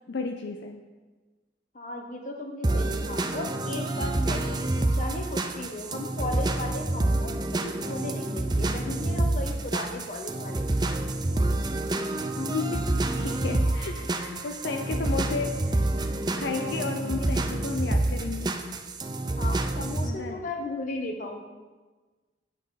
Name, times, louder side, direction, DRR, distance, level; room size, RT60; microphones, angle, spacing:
voice 1, 0.1-0.8 12.4-15.9 16.4-18.6 20.0-20.4, left 4 dB, 70° left, 5 dB, 0.5 m, -33 dB
voice 2, 1.7-4.6 4.9-10.7 19.4-21.4, left 2 dB, 45° left, 3 dB, 1.1 m, -36 dB
sound 1, 2.6-20.1, right 2 dB, 20° right, 0.5 m, -28 dB
9.0 x 8.3 x 4.1 m, 1.3 s
head